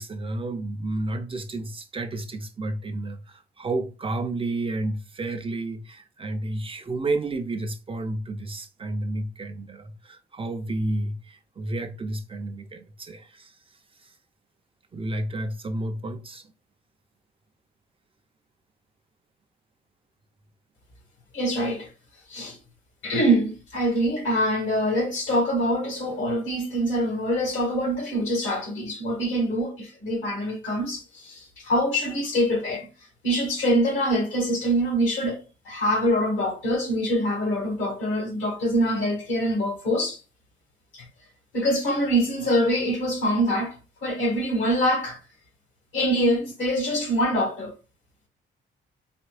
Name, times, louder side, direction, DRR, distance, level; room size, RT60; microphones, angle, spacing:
voice 1, 0.0-13.6 14.0-14.1 14.9-16.5, right 2 dB, 25° right, 0.5 m, -31 dB
voice 2, 21.3-21.9 22.3-22.6 23.0-32.9 33.2-40.2 40.9-41.1 41.5-43.8 44.0-45.2 45.9-47.7, equal, 70° left, 1.8 m, -24 dB
4.3 x 2.6 x 2.4 m
cardioid pair, 90°, 20 cm